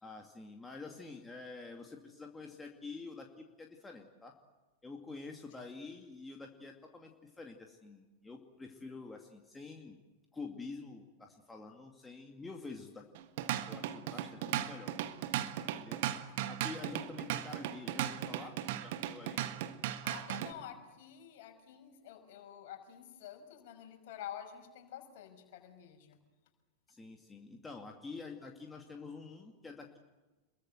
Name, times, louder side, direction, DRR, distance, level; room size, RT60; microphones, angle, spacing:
voice 1, 0.0-4.3 4.8-10.0 10.3-13.1 13.7-14.9 15.7-16.1 16.5-18.5 18.8-19.5 26.9-30.0, left 3 dB, 10° left, 2 dB, 2.4 m, -48 dB
Drum kit / Drum, 13.1-20.5, right 12 dB, 50° right, 1.5 m, -37 dB
voice 2, 20.0-26.2, left 10 dB, 50° left, 5 dB, 5.8 m, -49 dB
28.5 x 22.5 x 8.0 m, 1.2 s
figure-of-eight pair, 90°, 0 cm